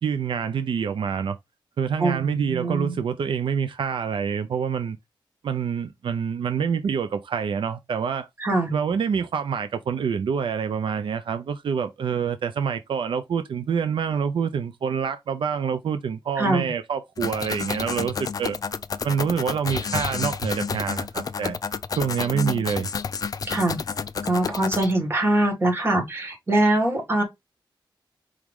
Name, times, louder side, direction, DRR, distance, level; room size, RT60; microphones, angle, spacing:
voice 1, 0.0-1.4 1.8-5.0 5.4-8.3 8.7-18.6 19.0-21.6 22.0-22.9, right 6 dB, 80° right, 0.4 m, -26 dB
voice 2, 2.0-2.9 8.4-8.7 16.4-16.7 22.3-22.6 23.4-23.8 24.2-27.2, right 1 dB, 30° right, 2.0 m, -23 dB
sound 1, 17.2-24.9, left 6 dB, 45° left, 0.4 m, -30 dB
4.9 x 3.1 x 3.5 m
wide cardioid pair, 180°, 8 cm